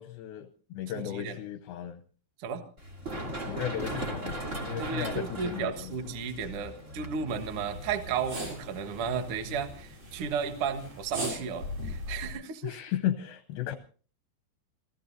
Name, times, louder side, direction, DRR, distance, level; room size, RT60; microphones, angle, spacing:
voice 1, 0.0-2.0 3.5-6.0 12.6-13.8, left 11 dB, 75° left, 8 dB, 2.4 m, -35 dB
voice 2, 0.9-1.4 2.4-2.6 4.8-12.8, right 6 dB, 90° right, 8 dB, 1.2 m, -34 dB
Run, 2.8-10.3, right 1 dB, 20° right, 2.4 m, -39 dB
sound 1, 7.3-12.3, equal, 45° right, 8.3 m, -40 dB
27.5 x 17.0 x 2.7 m, 0.40 s
omnidirectional pair, 4.9 m